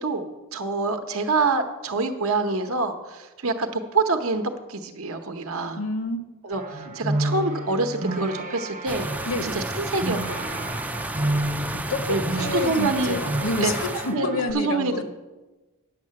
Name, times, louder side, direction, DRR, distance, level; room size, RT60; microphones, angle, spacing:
voice 1, 0.0-4.4 4.7-5.8 6.4-9.1 9.4-10.8 12.1-12.2 12.5-13.2 13.6-13.7 14.1-14.3 14.5-15.0, right 3 dB, 70° right, 7 dB, 0.8 m, -26 dB
voice 2, 5.8-6.2 6.7-6.9 9.2-9.6 11.7-15.0, left 2 dB, 65° left, 8 dB, 0.9 m, -29 dB
sound 1, 6.5-14.5, right 1 dB, 35° right, 0.7 m, -31 dB
sound 2, 8.9-14.1, right 2 dB, 5° right, 0.3 m, -32 dB
9.5 x 6.6 x 7.5 m, 1.2 s
head